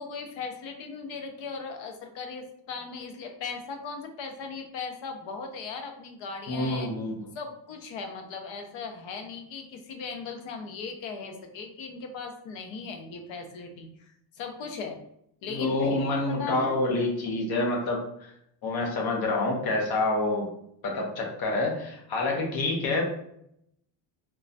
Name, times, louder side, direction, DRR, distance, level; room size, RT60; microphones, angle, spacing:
voice 1, 0.0-6.9 7.3-15.0 15.4-16.0 16.3-16.8 22.4-22.5, left 5 dB, 80° left, 4 dB, 0.7 m, -38 dB
voice 2, 6.5-7.3 15.5-18.3 18.6-20.5 20.8-23.0, left 2 dB, 50° left, 0 dB, 0.9 m, -27 dB
3.0 x 2.3 x 2.6 m, 0.75 s
cardioid pair, 130°, 46 cm